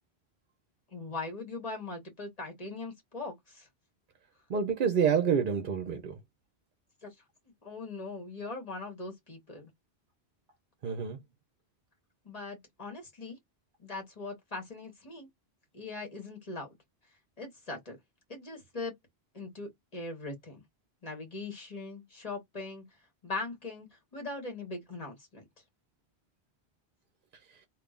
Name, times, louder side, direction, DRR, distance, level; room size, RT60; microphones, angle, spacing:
voice 1, 0.9-3.7 7.0-7.1 7.6-9.7 12.2-13.4 13.8-15.3 15.7-16.7 17.4-18.0 18.3-18.9 19.3-20.6 21.0-22.8 23.2-25.5, left 3 dB, 35° left, 1.6 m, -40 dB
voice 2, 4.5-6.2 10.8-11.2 27.5-27.7, right 7 dB, 55° right, 0.7 m, -28 dB
3.6 x 2.5 x 2.4 m
omnidirectional pair, 1.1 m